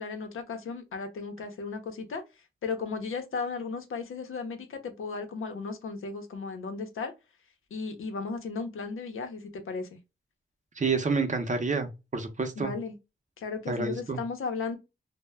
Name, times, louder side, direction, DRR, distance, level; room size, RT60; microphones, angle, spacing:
voice 1, 0.0-2.2 2.6-7.1 7.7-10.0 12.6-12.9 13.4-14.8, left 4 dB, 90° left, 0.6 m, -35 dB
voice 2, 10.8-12.7 13.7-14.2, right 4 dB, 35° right, 0.6 m, -29 dB
2.2 x 2.0 x 3.2 m
wide cardioid pair, 105°, 21 cm